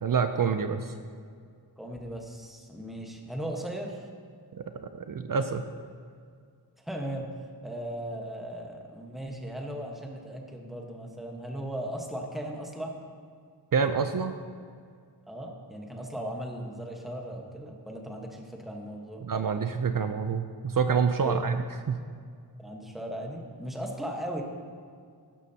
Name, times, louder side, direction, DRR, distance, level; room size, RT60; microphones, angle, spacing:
voice 1, 0.0-0.9 4.5-5.6 13.7-14.3 19.2-22.0, right 6 dB, 50° right, 8 dB, 0.5 m, -27 dB
voice 2, 1.8-4.0 6.8-7.3 7.6-12.9 15.3-19.2 21.2-21.4 22.6-24.4, right 1 dB, ahead, 1 dB, 1.2 m, -37 dB
12.5 x 12.0 x 2.8 m, 2.2 s
wide cardioid pair, 120°, 43 cm